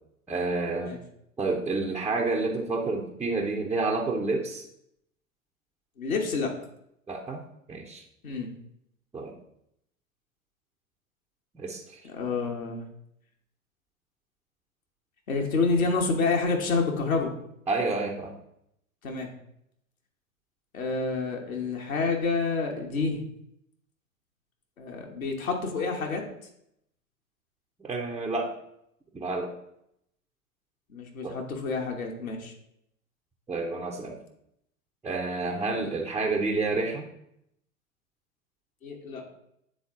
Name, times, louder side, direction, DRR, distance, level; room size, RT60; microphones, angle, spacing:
voice 1, 0.3-0.9 1.4-4.6 7.1-7.4 7.7-8.0 9.1-9.3 11.5-12.0 17.7-18.3 27.8-28.5 29.1-29.5 31.2-31.3 33.5-34.2 35.0-37.1, right 3 dB, 5° right, -3 dB, 0.3 m, -29 dB
voice 2, 6.0-6.5 8.2-8.5 12.0-12.8 15.3-17.3 19.0-19.3 20.7-23.2 24.8-26.2 30.9-32.5 38.8-39.2, left 4 dB, 75° left, 1 dB, 1.3 m, -28 dB
8.8 x 3.7 x 3.6 m, 0.76 s
figure-of-eight pair, 85°, 42 cm